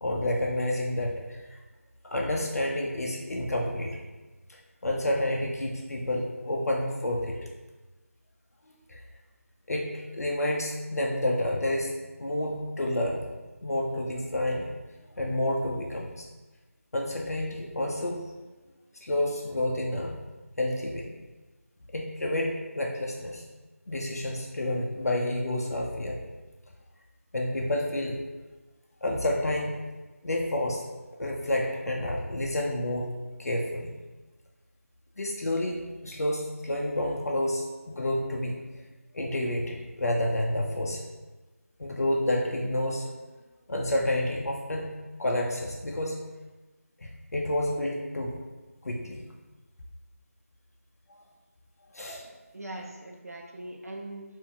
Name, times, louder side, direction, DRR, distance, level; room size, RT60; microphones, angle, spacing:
voice 1, 0.0-1.6 2.0-4.0 4.5-7.4 8.9-9.0 9.7-11.9 12.2-13.2 13.6-14.7 15.2-16.3 16.9-18.3 19.0-20.2 20.6-21.1 21.9-23.4 23.9-26.2 27.3-28.2 29.0-29.8 30.2-30.8 31.2-33.1 33.4-33.9 35.2-38.6 39.1-41.0 41.8-43.1 43.7-44.9 45.2-46.2 47.0-48.3 48.8-49.3 51.9-52.2, left 1 dB, 80° left, -1 dB, 0.5 m, -29 dB
voice 2, 52.2-54.2, right 1 dB, 75° right, 0 dB, 0.6 m, -41 dB
2.9 x 2.6 x 3.7 m, 1.2 s
figure-of-eight pair, 170°, 8 cm